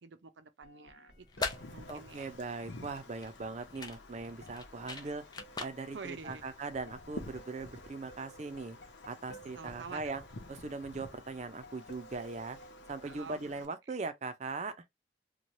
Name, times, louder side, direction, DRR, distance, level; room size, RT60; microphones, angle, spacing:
voice 1, 0.0-2.3 4.9-5.1 5.9-6.4 9.5-10.2 13.0-13.4, right 5 dB, 90° right, 0.5 m, -48 dB
sound 1, 0.6-13.2, right 2 dB, 65° left, 1.0 m, -57 dB
sound 2, 1.1-7.2, left 3 dB, 25° left, 0.5 m, -43 dB
Wind, 1.3-13.7, left 2 dB, 90° left, 0.8 m, -51 dB
voice 2, 1.9-5.2 5.6-8.8 9.0-10.2 10.5-12.6 12.9-14.8, right 3 dB, 40° right, 0.5 m, -40 dB
3.1 x 2.2 x 2.6 m
head